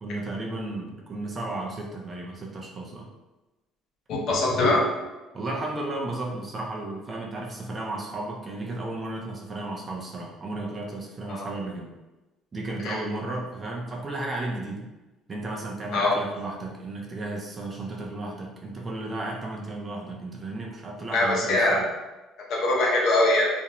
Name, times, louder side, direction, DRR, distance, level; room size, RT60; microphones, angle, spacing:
voice 1, 0.0-3.1 5.3-11.9 12.5-14.9 15.3-21.8, right 2 dB, 25° right, -1 dB, 0.4 m, -34 dB
voice 2, 4.1-4.8 11.3-11.5 12.8-13.0 15.9-16.2 21.1-21.8 22.5-23.5, left 2 dB, 55° left, -3 dB, 0.7 m, -22 dB
2.5 x 2.0 x 2.8 m, 1.1 s
cardioid pair, 155°, 0 cm